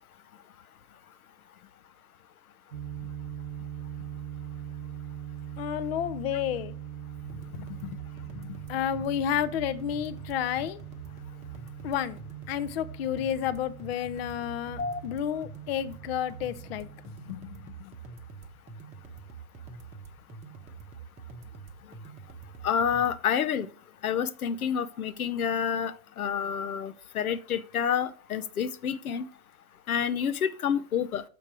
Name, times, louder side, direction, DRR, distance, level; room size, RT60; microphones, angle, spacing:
sound 1, 2.7-17.1, right 10 dB, 80° right, 0.8 m, -42 dB
voice 1, 5.6-6.7 7.5-8.0 8.3-10.8 11.8-12.2 12.5-16.9 17.3-17.7, left 10 dB, 45° left, 0.7 m, -31 dB
sound 2, 7.2-23.2, right 5 dB, 15° right, 0.9 m, -46 dB
voice 2, 22.6-23.7 24.0-29.3 29.9-31.2, left 8 dB, 75° left, 0.7 m, -28 dB
6.8 x 5.2 x 6.0 m
hypercardioid pair, 120°, 43 cm